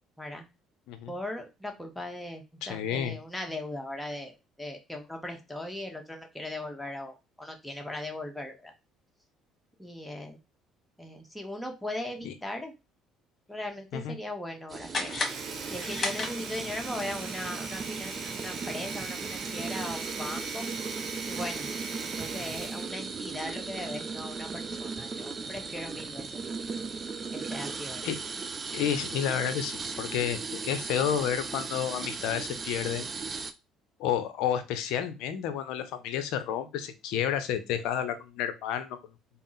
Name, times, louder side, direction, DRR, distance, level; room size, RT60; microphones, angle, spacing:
voice 1, 1.1-4.3 4.6-8.7 9.8-10.4 11.0-12.7 13.5-15.2 15.7-20.6 21.3-21.7 22.0-26.3 27.3-28.1, left 1 dB, 5° left, 2 dB, 1.0 m, -38 dB
voice 2, 2.6-3.2 12.2-12.3 13.9-14.1 28.0-28.2 28.7-33.1 34.0-39.0, left 9 dB, 65° left, 10 dB, 0.6 m, -30 dB
sound 1, 14.7-33.5, right 4 dB, 35° right, 0.4 m, -37 dB
sound 2, 14.9-16.8, left 3 dB, 35° left, 1.2 m, -34 dB
Domestic sounds home sounds, 15.1-23.0, right 4 dB, 55° right, 0.8 m, -40 dB
3.5 x 2.0 x 4.0 m, 0.25 s
figure-of-eight pair, 55°, 0 cm